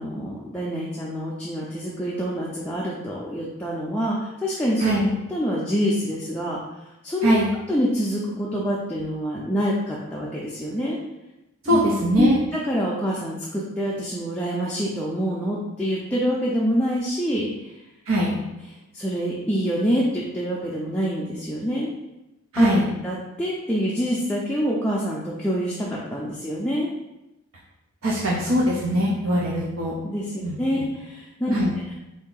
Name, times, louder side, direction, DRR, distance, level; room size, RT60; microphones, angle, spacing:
voice 1, 0.0-4.8 5.3-6.6 7.0-7.4 7.7-11.0 11.7-11.8 12.2-12.4 12.7-17.7 18.9-21.9 22.6-22.8 23.0-26.9 30.0-31.5, equal, 5° left, -6 dB, 0.4 m, -26 dB
voice 2, 11.6-12.4 18.1-18.4 22.5-22.9 28.0-29.9 30.4-30.6 31.5-31.7, equal, 70° right, -4 dB, 0.6 m, -21 dB
3.4 x 2.7 x 3.8 m, 0.96 s
head